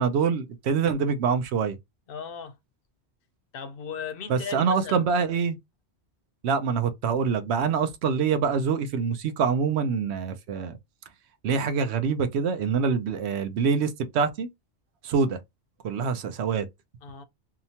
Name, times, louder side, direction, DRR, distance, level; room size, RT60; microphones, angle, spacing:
voice 1, 0.0-1.8 4.3-5.6 6.4-10.8 11.4-14.5 15.0-15.4 15.8-16.7, right 6 dB, 70° right, 0.8 m, -25 dB
voice 2, 2.1-2.6 3.5-5.0 17.0-17.2, left 6 dB, 60° left, 0.7 m, -37 dB
2.8 x 2.1 x 2.7 m
omnidirectional pair, 1.2 m